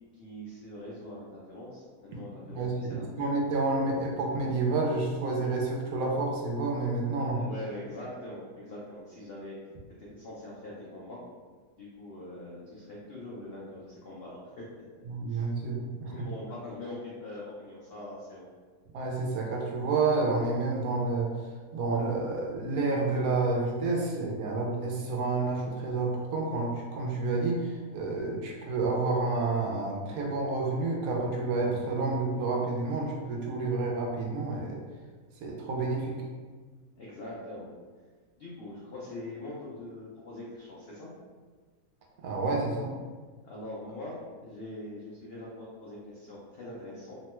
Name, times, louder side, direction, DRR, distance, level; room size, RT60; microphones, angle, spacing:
voice 1, 0.1-3.3 7.2-9.6 10.0-11.2 11.8-14.8 15.3-15.5 16.1-18.5 37.0-37.7 38.4-41.1 43.4-44.1 44.4-47.1, left 1 dB, 85° left, -5 dB, 0.5 m, -43 dB
voice 2, 2.5-7.4 15.1-16.1 18.9-21.3 21.7-34.8 35.4-36.2 42.2-42.9, right 3 dB, 70° right, -2 dB, 1.0 m, -29 dB
3.0 x 2.2 x 2.9 m, 1.5 s
omnidirectional pair, 1.7 m